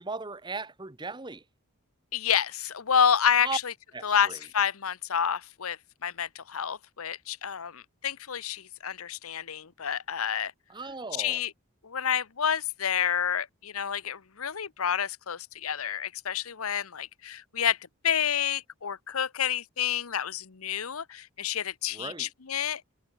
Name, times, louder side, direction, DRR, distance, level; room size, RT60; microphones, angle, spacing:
voice 1, 0.0-1.4 3.4-3.6 3.9-4.4 10.7-11.4 21.9-22.3, right 4 dB, 20° right, 1.0 m, -37 dB
voice 2, 2.1-3.7 4.0-5.8 6.0-10.5 11.2-11.5 11.8-17.8 18.0-22.8, left 8 dB, 80° left, 0.9 m, -29 dB
head